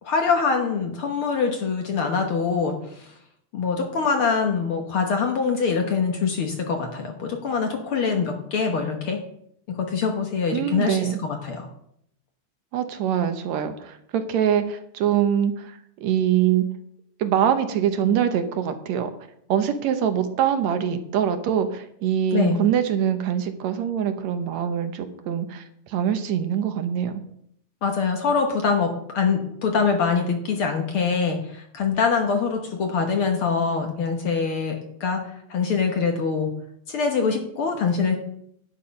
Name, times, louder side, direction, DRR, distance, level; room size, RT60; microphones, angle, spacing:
voice 1, 0.0-3.1 3.5-9.2 9.7-11.7 22.3-22.6 27.8-36.5 36.9-38.2, left 5 dB, 55° left, 4 dB, 1.6 m, -24 dB
voice 2, 10.5-11.2 12.7-16.7 17.2-19.1 19.5-27.2, right 9 dB, 70° right, 9 dB, 2.0 m, -24 dB
11.5 x 9.0 x 5.2 m, 0.70 s
omnidirectional pair, 3.4 m